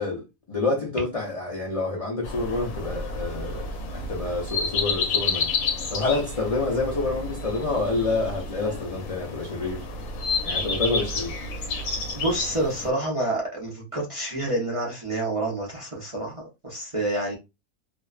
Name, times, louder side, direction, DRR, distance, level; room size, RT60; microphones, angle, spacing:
voice 1, 0.0-5.5 5.9-9.8 10.4-11.3, left 3 dB, 55° left, 0.3 m, -28 dB
sound 1, 2.2-12.9, left 4 dB, 80° left, 1.0 m, -30 dB
voice 2, 12.1-17.4, right 1 dB, 35° right, 0.5 m, -28 dB
2.6 x 2.1 x 2.3 m
omnidirectional pair, 1.5 m